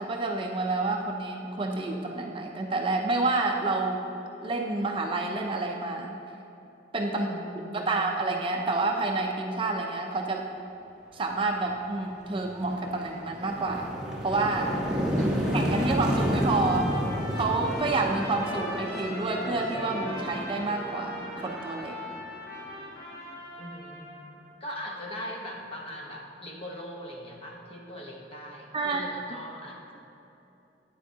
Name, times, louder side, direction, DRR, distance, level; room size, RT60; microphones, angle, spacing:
voice 1, 0.0-4.1 4.4-6.1 6.9-7.3 7.7-10.5 11.1-14.7 15.5-16.9 17.3-22.0 28.7-29.0, right 3 dB, 30° right, 2 dB, 0.4 m, -29 dB
voice 2, 7.1-8.1 15.2-15.8 23.6-24.2 24.6-30.0, equal, 30° left, 0 dB, 0.9 m, -40 dB
sound 1, 11.6-11.8 12.2-23.0, equal, 5° right, 1.0 m, -31 dB
Trumpet, 15.5-24.3, left 1 dB, 55° left, 1.6 m, -41 dB
9.0 x 7.8 x 2.7 m, 2.9 s
head